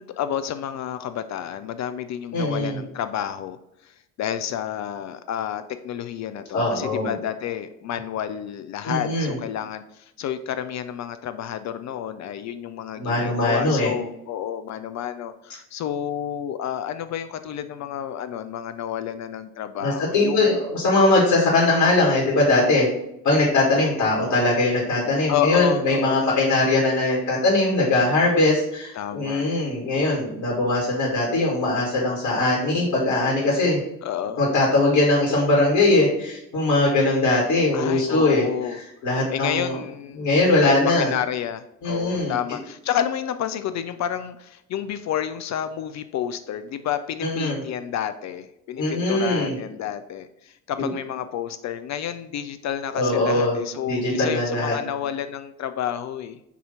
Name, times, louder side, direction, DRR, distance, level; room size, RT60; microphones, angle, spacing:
voice 1, 0.0-3.6 3.8-20.4 25.3-26.2 28.9-29.4 34.0-34.4 37.7-38.8 39.3-40.3 40.6-56.4, left 10 dB, 40° left, 10 dB, 0.4 m, -30 dB
voice 2, 2.3-2.8 6.5-7.1 8.8-9.3 13.0-13.9 19.8-22.9 23.2-33.8 34.4-38.8 39.0-39.8 40.2-41.1 41.8-42.3 47.2-47.6 48.8-49.5 50.8-50.9 52.9-53.6 53.9-54.8, left 2 dB, 60° left, -3 dB, 1.9 m, -21 dB
6.1 x 2.8 x 5.5 m, 0.81 s
hypercardioid pair, 55°, 44 cm